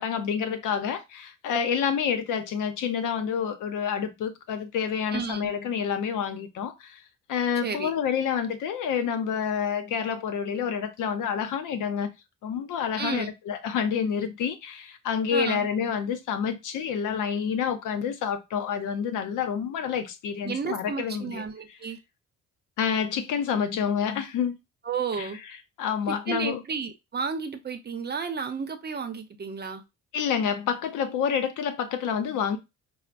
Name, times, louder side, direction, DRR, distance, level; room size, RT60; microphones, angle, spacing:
voice 1, 0.0-7.0 7.3-12.1 12.4-21.4 22.8-24.5 25.2-25.3 25.8-26.6 30.1-32.6, left 7 dB, 85° left, 0.8 m, -28 dB
voice 2, 5.1-5.5 7.6-7.9 13.0-13.3 15.3-15.7 20.4-22.0 24.8-25.4 26.1-29.8, right 5 dB, 35° right, 0.7 m, -32 dB
5.5 x 2.1 x 2.5 m
cardioid pair, 90°, 30 cm